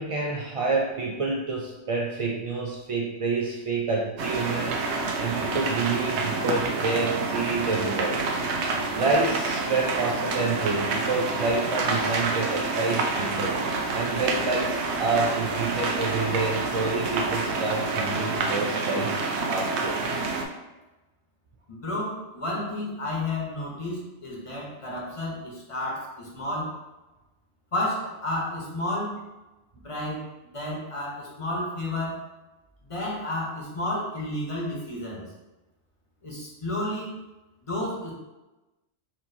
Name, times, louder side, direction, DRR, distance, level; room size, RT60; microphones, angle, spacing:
voice 1, 0.0-8.2 8.9-13.6 13.9-20.0, right 3 dB, 65° right, -2 dB, 0.3 m, -28 dB
sound 1, 4.2-20.4, right 3 dB, 85° right, 0.9 m, -28 dB
voice 2, 21.7-26.8 27.7-29.2 29.8-30.2 30.5-32.2 32.9-35.2 36.2-37.2 37.7-38.1, left 1 dB, 30° left, -4 dB, 0.9 m, -31 dB
4.3 x 2.8 x 2.7 m, 1.1 s
omnidirectional pair, 1.1 m